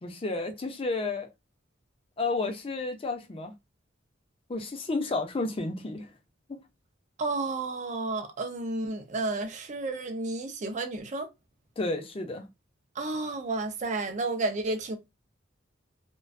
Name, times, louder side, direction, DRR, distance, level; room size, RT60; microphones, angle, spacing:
voice 1, 0.0-1.3 2.2-3.5 4.5-6.1 6.5-6.6 11.8-12.5, left 3 dB, 30° left, 0.5 m, -31 dB
voice 2, 7.2-11.3 13.0-15.0, right 3 dB, 40° right, 0.5 m, -31 dB
2.4 x 2.2 x 2.4 m
head